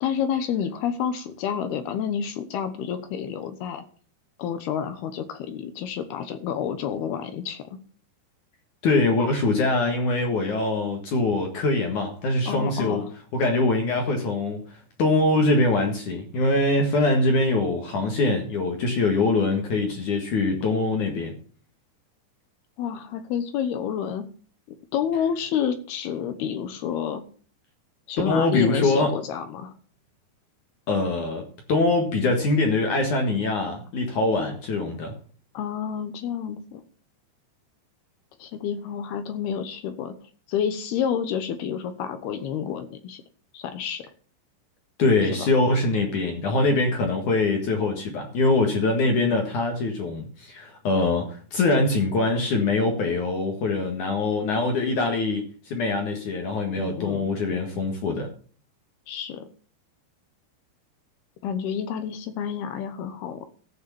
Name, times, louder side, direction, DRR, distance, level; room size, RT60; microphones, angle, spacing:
voice 1, 0.0-3.8 4.4-7.6 12.5-13.1 22.8-24.3 24.9-27.2 28.1-29.7 35.5-36.8 38.4-40.1 40.5-43.2 43.5-44.0 45.2-45.5 56.8-57.2 59.1-59.5 61.4-63.5, left 8 dB, 70° left, 2.7 m, -29 dB
voice 2, 8.8-13.0 13.3-21.3 28.3-29.2 30.9-35.1 45.0-58.3, left 2 dB, 55° left, 2.5 m, -23 dB
14.5 x 6.5 x 7.0 m
omnidirectional pair, 5.3 m